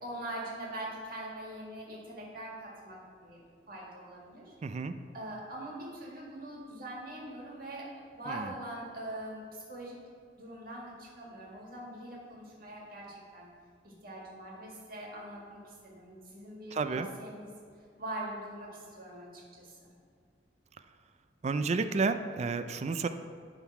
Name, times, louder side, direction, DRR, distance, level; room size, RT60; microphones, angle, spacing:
voice 1, 0.0-3.4 3.7-4.5 5.1-7.9 8.1-10.0 10.4-13.5 13.8-17.6 18.0-19.9, right 1 dB, 55° right, -4 dB, 1.9 m, -43 dB
voice 2, 4.6-5.0 8.3-8.5 16.7-17.1 21.4-23.1, right 4 dB, 40° right, 10 dB, 0.4 m, -31 dB
11.0 x 3.9 x 4.6 m, 2.2 s
head